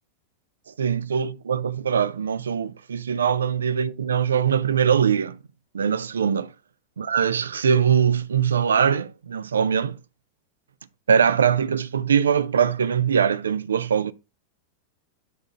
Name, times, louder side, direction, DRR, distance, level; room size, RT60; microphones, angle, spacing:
voice 1, 0.7-5.4 5.7-6.5 7.0-10.0 11.1-14.1, right 7 dB, 70° right, 0.5 m, -22 dB
9.4 x 3.8 x 4.1 m
figure-of-eight pair, 90°, 0 cm